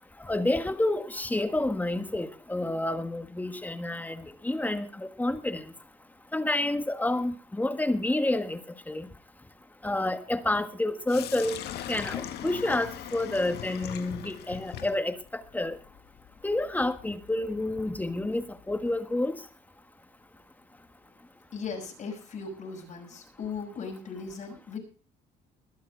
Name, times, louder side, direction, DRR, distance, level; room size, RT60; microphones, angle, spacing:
voice 1, 0.2-5.7 6.3-9.1 9.8-11.6 11.9-15.8 16.4-19.4, left 2 dB, 10° left, 10 dB, 1.5 m, -29 dB
Sink (filling or washing), 11.1-19.0, left 11 dB, 75° left, 1.7 m, -41 dB
voice 2, 21.5-24.8, left 5 dB, 50° left, 1 dB, 5.9 m, -38 dB
21.5 x 7.3 x 5.2 m, 0.37 s
cardioid pair, 110°, 17 cm